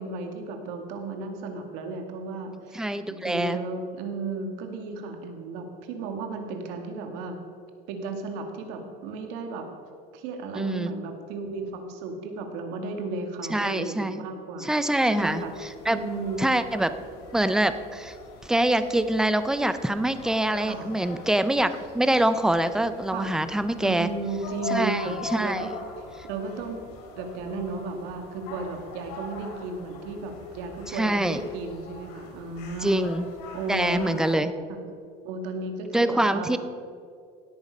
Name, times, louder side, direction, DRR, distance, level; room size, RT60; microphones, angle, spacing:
voice 1, 0.0-7.4 7.9-9.7 10.1-14.7 15.1-15.5 15.9-16.5 20.5-20.9 23.1-23.4 23.8-25.7 26.2-26.8 27.2-33.1 33.5-34.2 34.7-34.8 35.2-36.6, right 3 dB, 65° right, 4 dB, 2.1 m, -34 dB
voice 2, 2.7-3.6 10.6-10.9 13.5-14.2 14.6-15.4 15.9-16.0 16.4-16.9 17.3-18.1 18.4-24.1 24.7-25.7 30.9-31.4 32.8-33.3 33.7-34.5 35.9-36.6, right 1 dB, 5° right, 11 dB, 0.4 m, -25 dB
sound 1, 15.1-34.3, left 3 dB, 85° left, 2.7 m, -42 dB
17.5 x 9.1 x 5.3 m, 2.3 s
cardioid pair, 175°, 19 cm